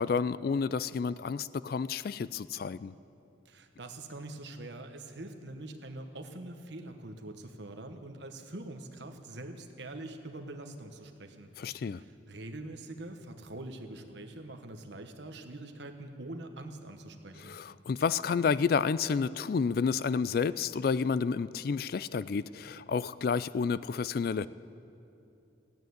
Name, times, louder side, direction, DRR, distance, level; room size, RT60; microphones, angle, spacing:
voice 1, 0.0-2.9 11.6-12.0 17.4-24.5, left 5 dB, 50° left, 16 dB, 0.3 m, -30 dB
voice 2, 3.5-11.5 11.8-17.6, right 2 dB, 65° right, 6 dB, 1.1 m, -44 dB
15.5 x 9.1 x 9.3 m, 2.7 s
head